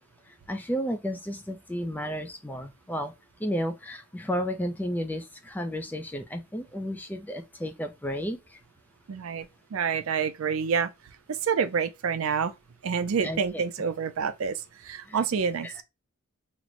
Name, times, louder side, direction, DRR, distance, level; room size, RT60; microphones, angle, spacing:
voice 1, 0.5-3.1 3.4-8.4 13.2-13.6 15.1-15.2 15.6-15.8, equal, 10° left, 0.4 m, -32 dB
voice 2, 9.1-9.5 9.7-10.9 11.3-12.5 12.8-15.8, right 6 dB, 75° right, 0.4 m, -28 dB
3.1 x 2.1 x 3.7 m
head